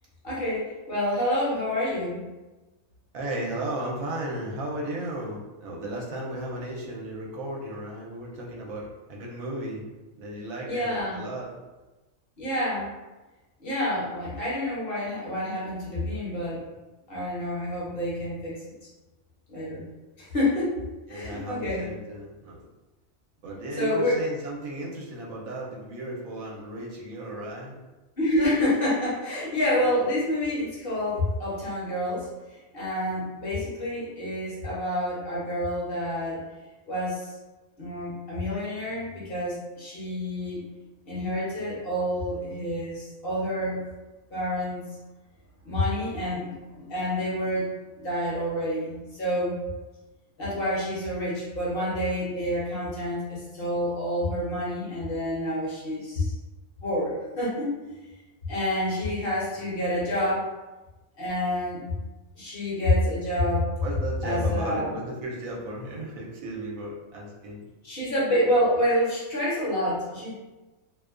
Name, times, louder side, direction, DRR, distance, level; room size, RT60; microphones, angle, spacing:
voice 1, 0.2-2.2 10.7-11.2 12.4-12.9 13.6-16.6 17.1-18.6 19.5-19.8 20.2-20.7 21.1-21.8 23.8-24.2 28.2-32.3 32.7-36.4 36.9-37.3 37.8-40.6 41.1-43.8 44.3-44.8 45.6-47.6 48.0-49.6 50.4-56.3 56.8-57.7 58.5-60.5 61.2-61.8 62.4-63.7 64.2-65.0 67.8-70.3, left 1 dB, 50° left, -7 dB, 0.9 m, -28 dB
voice 2, 3.1-9.8 10.2-11.5 21.1-22.6 23.4-27.7 59.5-59.7 60.1-60.3 63.8-67.6, right 1 dB, 85° right, -2 dB, 1.0 m, -35 dB
2.6 x 2.1 x 2.3 m, 1.1 s
omnidirectional pair, 1.4 m